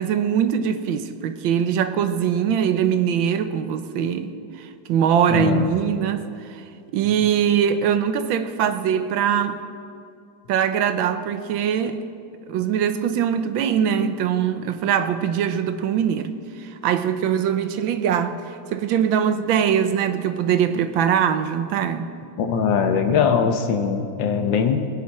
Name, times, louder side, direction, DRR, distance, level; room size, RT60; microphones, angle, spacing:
voice 1, 0.0-6.2 6.5-6.6 6.9-9.6 10.5-12.0 12.5-16.3 16.6-18.4 18.7-22.1, right 8 dB, 90° right, 10 dB, 1.5 m, -22 dB
voice 2, 5.3-5.7 22.4-24.9, left 6 dB, 75° left, 6 dB, 1.7 m, -21 dB
21.0 x 9.9 x 4.2 m, 2.4 s
omnidirectional pair, 2.1 m